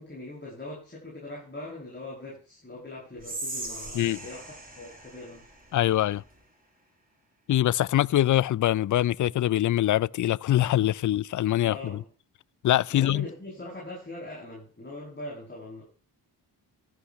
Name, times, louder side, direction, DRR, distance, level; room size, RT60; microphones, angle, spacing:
voice 1, 0.0-5.5 11.6-12.1 12.9-15.8, left 2 dB, 25° left, 7.3 m, -41 dB
Whispering, 3.2-6.4, right 2 dB, 20° right, 6.7 m, -40 dB
voice 2, 5.7-6.2 7.5-12.0 12.6-13.3, left 13 dB, 45° left, 0.4 m, -24 dB
14.0 x 11.5 x 3.1 m
cardioid pair, 55°, 42 cm